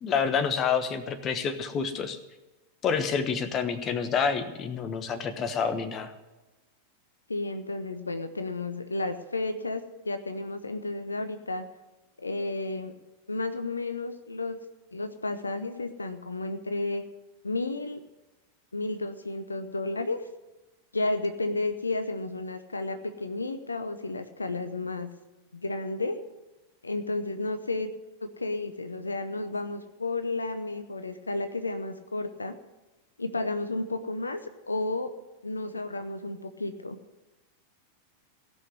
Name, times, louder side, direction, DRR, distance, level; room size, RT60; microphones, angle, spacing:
voice 1, 0.0-2.2 2.8-6.1, left 6 dB, 30° left, 10 dB, 1.2 m, -28 dB
voice 2, 7.3-11.7 12.2-12.9 13.3-14.6 14.9-17.0 17.4-18.0 18.7-20.3 20.9-25.1 25.5-26.2 26.8-27.9 28.2-32.5 33.2-35.1 35.4-37.0, left 2 dB, 80° left, 9 dB, 0.7 m, -32 dB
16.5 x 6.3 x 9.6 m, 1.1 s
figure-of-eight pair, 90°, 0 cm